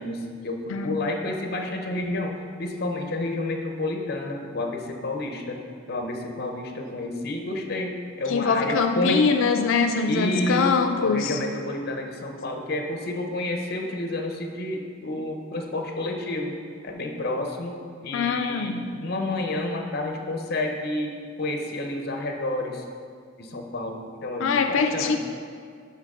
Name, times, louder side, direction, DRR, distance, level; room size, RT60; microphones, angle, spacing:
voice 1, 0.0-5.6 5.9-9.2 10.1-10.7 11.0-16.6 16.8-17.8 18.0-22.8 23.4-25.2, left 2 dB, 50° left, 3 dB, 0.8 m, -30 dB
voice 2, 0.7-1.1 8.3-11.4 18.1-18.9 24.4-25.2, left 5 dB, 80° left, 6 dB, 0.4 m, -23 dB
12.0 x 4.1 x 3.7 m, 2.1 s
head